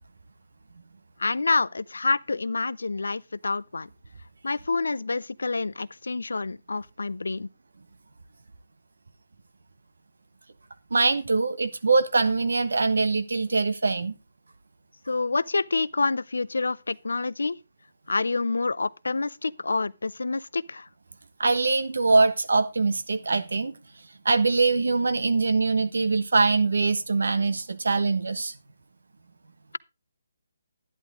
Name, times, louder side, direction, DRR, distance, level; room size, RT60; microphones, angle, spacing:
voice 1, 1.2-3.9 4.4-7.5 15.1-17.6 18.1-20.9, left 3 dB, 75° left, 0.5 m, -27 dB
voice 2, 10.9-14.2 21.4-23.8 24.2-28.5, right 3 dB, 75° right, 1.4 m, -23 dB
11.0 x 10.5 x 3.7 m
figure-of-eight pair, 145°, 0 cm